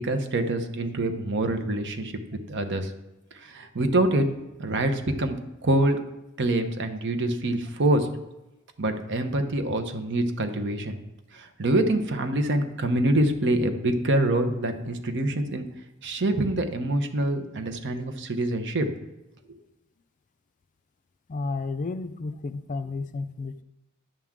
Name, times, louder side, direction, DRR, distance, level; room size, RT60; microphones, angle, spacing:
voice 1, 0.0-2.9 3.4-4.3 4.6-5.4 5.6-6.0 6.4-8.1 8.8-11.0 11.3-15.7 16.0-18.9, right 1 dB, 55° right, 8 dB, 0.9 m, -25 dB
voice 2, 21.3-23.6, left 3 dB, 35° left, 12 dB, 0.4 m, -32 dB
10.5 x 3.7 x 7.3 m, 0.96 s
head